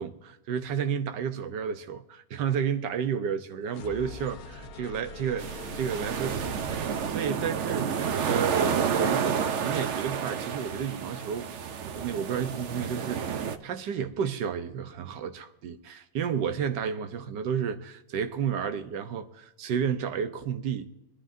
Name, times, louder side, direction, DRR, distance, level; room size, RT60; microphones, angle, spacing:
voice 1, 0.0-5.5 5.7-11.5 11.8-20.9, right 7 dB, 85° right, 1.5 m, -31 dB
sound 1, 3.6-9.5, left 4 dB, 60° left, 1.2 m, -45 dB
sound 2, 5.4-13.6, right 7 dB, 55° right, 0.9 m, -30 dB
23.0 x 11.0 x 2.7 m
omnidirectional pair, 1.8 m